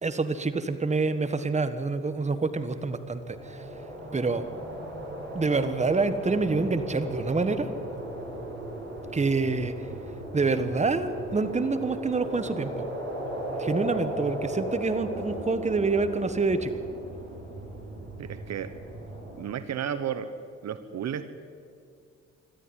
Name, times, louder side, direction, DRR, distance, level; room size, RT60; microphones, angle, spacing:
voice 1, 0.0-3.6 4.1-4.4 5.3-7.7 9.1-9.7 10.3-12.7 13.6-16.8, right 3 dB, 25° right, 11 dB, 1.5 m, -27 dB
sound 1, 2.5-19.4, right 1 dB, 40° right, 6.9 m, -37 dB
voice 2, 18.2-18.7 19.3-20.3 20.6-21.3, right 9 dB, 60° right, 12 dB, 1.2 m, -33 dB
24.0 x 13.5 x 9.9 m, 2.3 s
cardioid pair, 90°, 30 cm